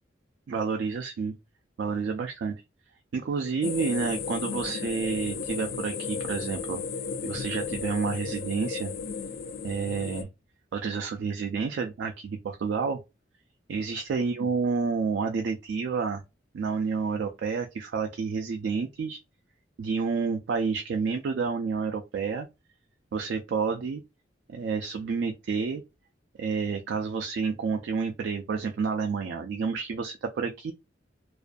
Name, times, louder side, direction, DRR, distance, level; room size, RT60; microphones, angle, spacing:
voice 1, 0.5-1.3 1.8-2.6 3.1-6.8 7.2-8.9 9.6-10.3 10.7-13.0 13.7-16.2 16.5-19.2 19.8-22.5 23.1-24.0 24.5-25.8 26.4-30.7, right 5 dB, 70° right, 0.3 m, -29 dB
sound 1, 3.6-10.2, left 5 dB, 60° left, 0.4 m, -34 dB
2.4 x 2.2 x 2.4 m
head